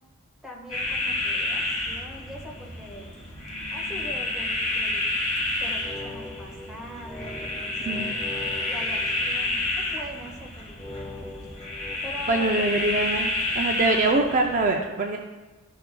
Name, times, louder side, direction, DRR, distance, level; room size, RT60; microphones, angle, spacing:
voice 1, 0.4-3.2 3.7-5.0 5.6-9.6 9.9-11.5 12.0-12.7, equal, ahead, -3 dB, 1.3 m, -42 dB
sound 1, 0.7-14.6, left 2 dB, 35° left, 1.3 m, -30 dB
sound 2, 5.6-9.9 10.8-12.0, left 2 dB, 15° left, 1.3 m, -41 dB
voice 2, 12.3-13.3 13.5-15.2, right 2 dB, 40° right, 2 dB, 0.5 m, -23 dB
12.5 x 5.6 x 2.2 m, 1.2 s
head